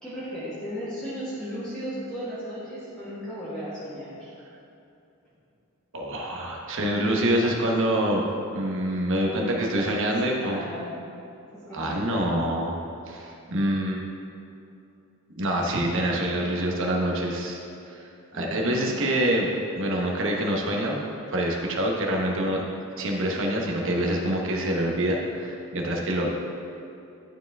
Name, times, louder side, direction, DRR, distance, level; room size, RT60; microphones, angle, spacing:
voice 1, 0.0-4.3 9.2-10.1 10.4-11.0 11.5-12.4 18.3-19.0, equal, 5° left, -12 dB, 1.5 m, -36 dB
voice 2, 5.9-8.2 8.5-10.6 11.7-12.8 13.1-14.0 15.4-17.6 17.9-21.0 21.3-22.6 23.0-26.3, right 1 dB, 60° right, -1 dB, 1.0 m, -26 dB
11.5 x 4.7 x 3.5 m, 2.7 s
head